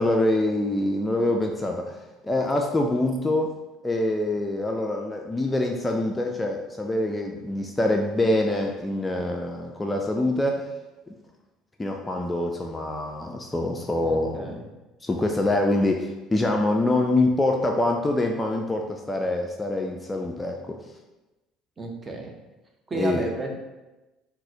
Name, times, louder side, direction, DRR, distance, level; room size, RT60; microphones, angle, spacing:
voice 1, 0.0-1.9 2.2-3.5 3.8-10.6 11.8-14.6 15.0-20.8 22.9-23.2, left 1 dB, 15° left, 2 dB, 0.3 m, -25 dB
voice 2, 14.0-14.6 21.8-22.3 22.9-23.5, right 2 dB, 25° right, 2 dB, 0.6 m, -32 dB
3.9 x 2.0 x 2.7 m, 1.1 s
figure-of-eight pair, 60°, 0 cm